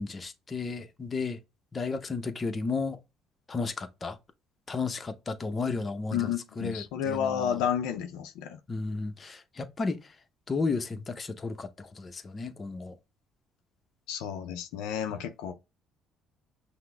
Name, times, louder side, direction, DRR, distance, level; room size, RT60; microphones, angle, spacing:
voice 1, 0.0-1.4 1.7-3.0 3.5-4.2 4.7-7.6 8.7-10.1 10.5-12.9, left 4 dB, 30° left, 0.7 m, -33 dB
voice 2, 6.1-8.6 14.1-15.5, left 9 dB, 85° left, 0.4 m, -31 dB
5.8 x 2.1 x 3.2 m
supercardioid pair, 80°, 0 cm